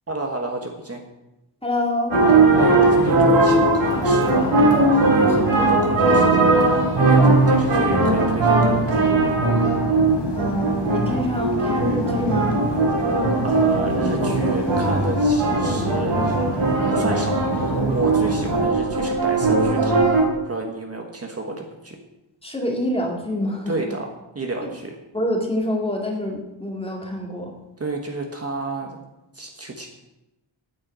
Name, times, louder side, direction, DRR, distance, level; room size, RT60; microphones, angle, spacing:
voice 1, 0.1-1.0 2.5-9.2 13.4-16.4 16.9-20.0 20.3-22.0 23.7-25.0 27.8-29.0 29.3-29.9, right 2 dB, 30° right, 2 dB, 1.3 m, -30 dB
voice 2, 1.6-2.1 7.2-7.3 10.3-12.6 22.4-23.7 25.1-27.5, equal, 10° left, 0 dB, 2.1 m, -26 dB
sound 1, 2.1-18.7, left 1 dB, 60° left, 1.9 m, -29 dB
sound 2, 2.1-20.3, right 3 dB, 70° right, 3.6 m, -19 dB
9.8 x 9.2 x 7.4 m, 0.94 s
wide cardioid pair, 170°, 46 cm